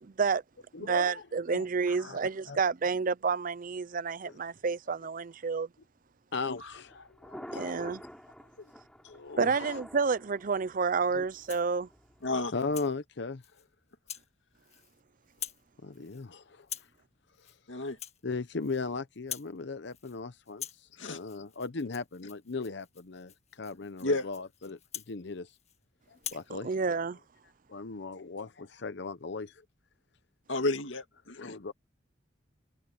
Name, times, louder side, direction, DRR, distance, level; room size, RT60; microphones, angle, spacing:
voice 1, 0.0-0.4 0.8-5.7 7.5-8.0 9.4-11.9 26.6-27.2, right 5 dB, 45° right, 0.5 m, -29 dB
voice 2, 0.7-1.2 1.5-2.2 2.5-2.6 4.2-4.3 6.3-8.1 9.0-9.8 11.1-11.2 12.5-13.4 15.8-16.7 18.2-25.5 26.1-26.7 27.7-29.6 31.3-31.7, left 4 dB, 65° left, 0.8 m, -38 dB
Thunder, 6.5-12.5, equal, 5° left, 3.5 m, -48 dB
Rattle (instrument), 11.3-11.7 12.2-12.9 13.4-13.6 14.1-14.3 14.6-15.0 15.3-15.7 15.9-16.3 16.6-17.0 17.3-17.6 17.9-18.9 19.1-19.6 19.9-20.2 20.5-25.8 26.1-26.5, left 9 dB, 35° left, 1.7 m, -45 dB
voice 3, 12.2-12.5 17.7-18.0 21.0-21.2 24.0-24.2 30.5-31.6, left 2 dB, 85° left, 2.1 m, -31 dB
head